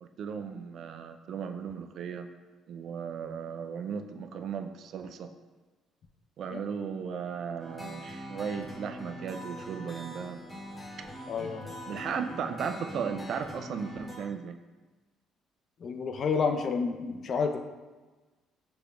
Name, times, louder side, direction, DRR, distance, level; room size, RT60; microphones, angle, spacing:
voice 1, 0.0-2.3 2.7-5.3 6.4-10.4 11.0-11.1 11.9-14.6, right 6 dB, 65° right, 7 dB, 0.3 m, -36 dB
sound 1, 7.6-14.2, equal, 5° left, 1.3 m, -42 dB
voice 2, 11.3-11.7 15.8-17.6, left 5 dB, 55° left, 6 dB, 0.4 m, -29 dB
6.1 x 3.4 x 2.3 m, 1.3 s
supercardioid pair, 65°, 0 cm